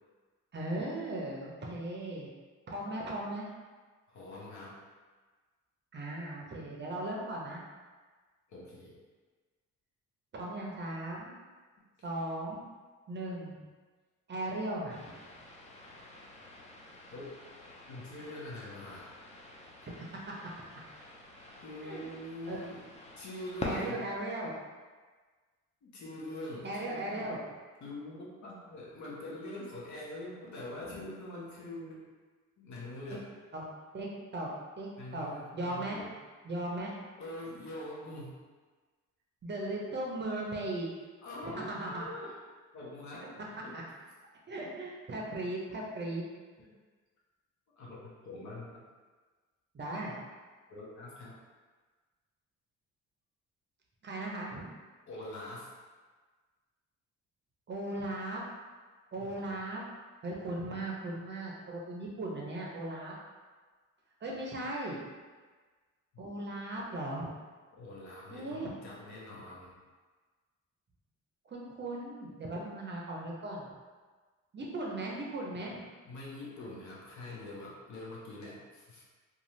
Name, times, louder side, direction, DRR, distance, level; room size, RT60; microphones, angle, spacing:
voice 1, 0.5-2.3 2.7-3.5 5.9-7.6 10.3-11.3 12.0-12.6 13.1-13.6 14.3-15.2 19.9-20.1 21.8-22.1 22.5-22.6 23.6-24.6 26.6-27.4 30.9-31.0 33.5-33.6 33.9-34.1 34.3-34.5 34.8-36.0 36.4-37.0 39.4-40.9 41.6-42.0 43.2-43.3 43.7-43.8 44.5-46.2 49.7-50.2 54.0-54.7 57.7-58.4 59.1-59.8 60.2-63.1 64.2-65.0 66.2-67.3 68.3-68.7 71.5-73.7 74.5-75.8, right 1 dB, 35° right, -2 dB, 0.6 m, -37 dB
voice 2, 4.1-4.8 8.5-9.0 15.8-15.9 17.1-17.4 17.9-19.1 19.3-19.4 21.6-24.1 25.8-27.3 27.8-32.1 32.6-33.3 35.0-36.1 37.2-38.4 41.2-42.3 42.7-43.8 46.6-46.7 47.8-48.8 50.7-51.4 55.1-55.7 59.2-59.6 66.1-66.2 67.7-69.8 76.0-79.0, left 1 dB, 60° left, -5 dB, 0.9 m, -44 dB
sound 1, 14.9-23.9, left 2 dB, 20° left, 0.5 m, -46 dB
2.6 x 2.3 x 3.1 m, 1.4 s
cardioid pair, 90°, 32 cm